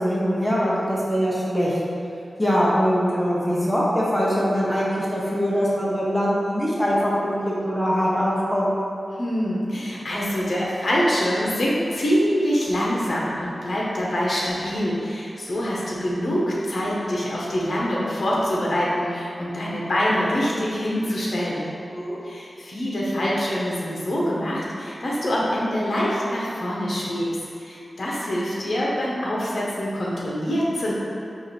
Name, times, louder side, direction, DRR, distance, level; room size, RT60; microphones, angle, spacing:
voice 1, 0.0-1.7 2.4-8.7 21.9-22.2, equal, 5° left, -7 dB, 0.9 m, -22 dB
voice 2, 9.2-21.7 22.2-30.9, equal, 55° left, -6 dB, 1.0 m, -25 dB
4.9 x 2.6 x 4.2 m, 2.6 s
wide cardioid pair, 100°, 0 cm